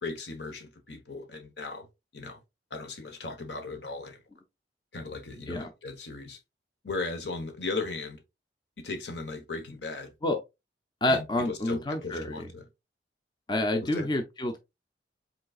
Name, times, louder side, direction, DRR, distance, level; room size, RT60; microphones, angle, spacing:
voice 1, 0.0-1.9 2.1-2.4 2.7-4.2 4.9-6.4 6.8-8.2 8.8-10.1 11.1-12.7 13.8-14.1, left 3 dB, 70° left, 1.2 m, -37 dB
voice 2, 11.0-12.4 13.5-14.6, left 1 dB, 25° left, 0.6 m, -28 dB
5.2 x 3.9 x 2.4 m
head